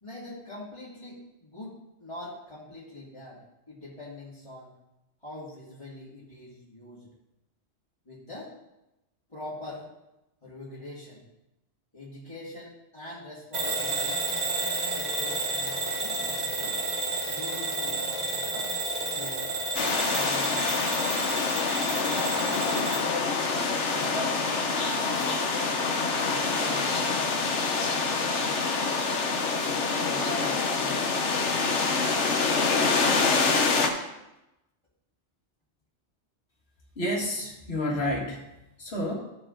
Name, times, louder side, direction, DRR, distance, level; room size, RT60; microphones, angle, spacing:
voice 1, 0.0-4.7 5.2-7.1 8.1-8.5 9.3-9.9 10.4-11.2 11.9-14.2 14.9-16.8 17.2-18.7 19.1-19.6 20.1-21.0 22.0-24.6 25.1-25.5 26.3-27.6 28.0-28.2 30.0-31.8 32.7-33.7, left 2 dB, 25° left, -11 dB, 2.3 m, -42 dB
Bell / Alarm, 13.5-23.1, right 3 dB, 40° right, 1.3 m, -31 dB
sound 1, 19.7-33.9, left 4 dB, 85° left, 1.3 m, -26 dB
voice 2, 37.0-38.5 38.8-39.1, left 1 dB, 65° left, -2 dB, 2.1 m, -30 dB
14.0 x 4.9 x 3.8 m, 0.92 s
omnidirectional pair, 1.2 m